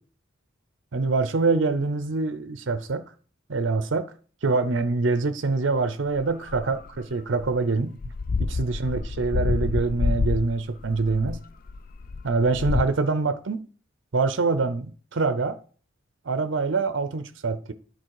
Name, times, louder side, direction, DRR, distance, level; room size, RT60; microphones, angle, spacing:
voice 1, 0.9-3.0 3.5-4.1 4.4-8.0 8.4-11.4 12.2-13.7 14.1-15.6 16.2-17.7, right 3 dB, 65° right, 0.6 m, -25 dB
sound 1, 6.2-6.9 7.4-7.6 8.0-12.9, left 4 dB, 45° left, 0.3 m, -28 dB
10.0 x 4.1 x 4.7 m
head